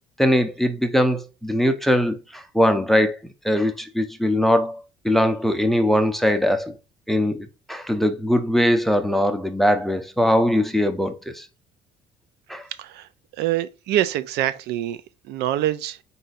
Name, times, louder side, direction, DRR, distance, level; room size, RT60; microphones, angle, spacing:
voice 1, 0.2-3.2 3.4-6.7 7.1-11.4 12.5-12.6, equal, ahead, 0.5 m, -21 dB
voice 2, 13.4-15.0 15.3-16.0, right 13 dB, 80° right, 0.4 m, -25 dB
4.2 x 2.6 x 3.8 m
cardioid pair, 110°, 17 cm